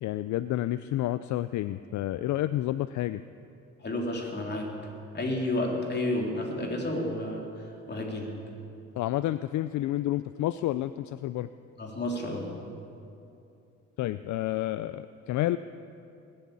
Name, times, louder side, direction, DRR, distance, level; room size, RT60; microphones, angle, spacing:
voice 1, 0.0-3.2 9.0-11.5 14.0-15.6, left 14 dB, 70° left, 13 dB, 0.4 m, -30 dB
voice 2, 3.8-4.7 5.1-7.5 7.9-8.3 11.8-12.5, left 1 dB, 35° left, 0 dB, 3.3 m, -31 dB
20.5 x 7.9 x 8.6 m, 2.6 s
cardioid pair, 90°, 30 cm